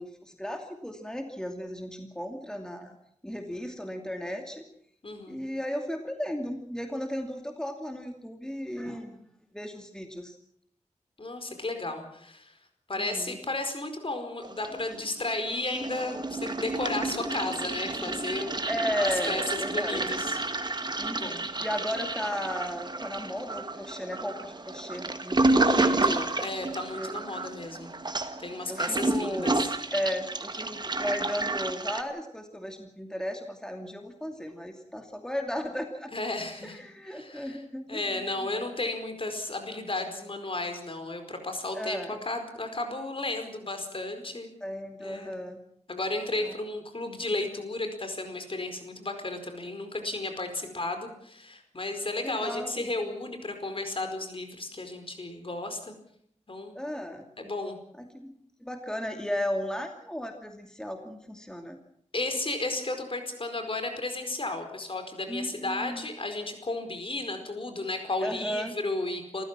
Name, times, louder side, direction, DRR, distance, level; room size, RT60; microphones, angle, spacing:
voice 1, 0.0-3.0 3.2-4.6 5.3-9.2 9.5-10.4 13.0-13.4 18.7-20.2 21.0-26.0 26.9-27.1 28.7-29.6 29.9-36.1 36.6-38.5 41.7-42.2 44.6-45.6 46.4-46.5 50.6-50.8 52.2-52.8 56.7-57.2 58.0-61.8 65.3-66.1 68.2-68.8, equal, 5° left, 4 dB, 2.6 m, -35 dB
voice 2, 5.0-5.4 11.2-12.5 12.9-18.7 19.0-20.4 21.1-21.4 25.5-28.0 28.4-29.5 36.1-36.8 37.1-37.6 37.9-44.5 45.0-45.3 45.9-55.9 56.5-56.7 57.4-57.8 62.1-69.4, left 2 dB, 50° left, 7 dB, 4.7 m, -33 dB
Toilet flush, 14.4-15.3 15.5-32.0, right 2 dB, 35° right, 1.7 m, -30 dB
27.5 x 15.0 x 7.5 m, 0.70 s
wide cardioid pair, 70°, 12 cm